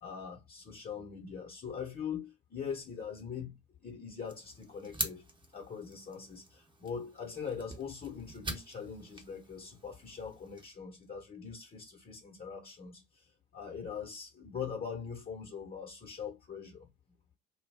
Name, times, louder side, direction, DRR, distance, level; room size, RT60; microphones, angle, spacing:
voice 1, 0.0-3.5 3.8-5.2 5.5-16.9, left 6 dB, 30° left, 1.1 m, -42 dB
sound 1, 4.2-10.7, right 2 dB, 15° right, 1.0 m, -44 dB
2.3 x 2.3 x 3.4 m
hypercardioid pair, 60°, 30 cm